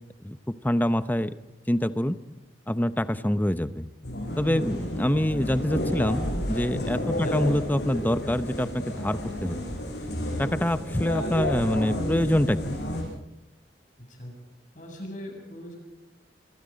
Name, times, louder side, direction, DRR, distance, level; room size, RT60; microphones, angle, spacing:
voice 1, 0.2-1.3 1.7-2.2 2.7-3.9 4.4-9.6 10.4-12.8, left 1 dB, 10° left, 12 dB, 0.7 m, -25 dB
sound 1, 4.0-13.0, left 1 dB, 65° left, 7.0 m, -31 dB
voice 2, 14.7-15.8, equal, 45° left, 2 dB, 7.6 m, -39 dB
25.5 x 25.0 x 5.3 m, 0.96 s
head